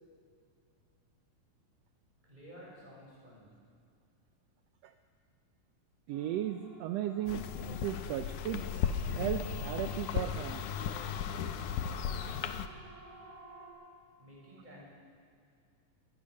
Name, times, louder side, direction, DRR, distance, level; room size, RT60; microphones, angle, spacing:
voice 1, 2.2-3.5 14.2-14.8, equal, 15° right, -4 dB, 7.0 m, -52 dB
Siren, 6.1-13.7, right 2 dB, 35° left, 5.9 m, -53 dB
voice 2, 6.1-7.5 7.8-8.8 9.2-10.6, right 11 dB, 75° right, 7 dB, 1.6 m, -36 dB
sound 1, 7.3-12.7, left 8 dB, 80° left, 2.4 m, -35 dB
21.0 x 20.5 x 6.5 m, 2.3 s
omnidirectional pair, 3.6 m